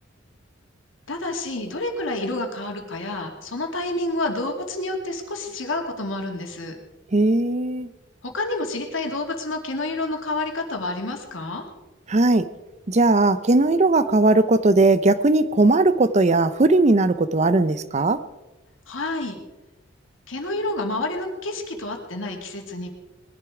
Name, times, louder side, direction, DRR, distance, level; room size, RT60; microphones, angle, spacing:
voice 1, 1.1-6.8 8.2-11.6 18.9-19.4 20.3-22.9, left 2 dB, 80° left, 3 dB, 2.5 m, -29 dB
voice 2, 7.1-7.9 12.1-12.5 12.9-18.2, right 2 dB, 35° right, 13 dB, 0.6 m, -18 dB
20.0 x 11.0 x 4.9 m, 1.1 s
head